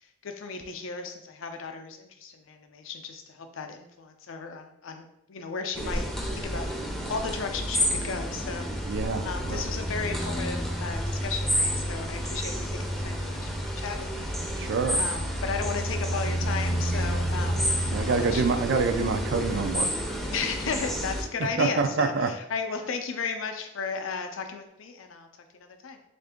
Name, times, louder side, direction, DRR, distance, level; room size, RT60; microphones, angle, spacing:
voice 1, 0.2-6.7 7.1-8.9 9.2-14.7 15.0-18.6 20.3-25.3 25.5-26.0, left 5 dB, 65° left, 6 dB, 0.5 m, -35 dB
sound 1, 5.7-21.2, equal, ahead, 0.5 m, -30 dB
voice 2, 8.8-9.7 14.6-15.0 17.9-19.9 21.6-22.3, right 4 dB, 60° right, 7 dB, 0.4 m, -26 dB
3.6 x 2.5 x 3.4 m, 0.81 s
head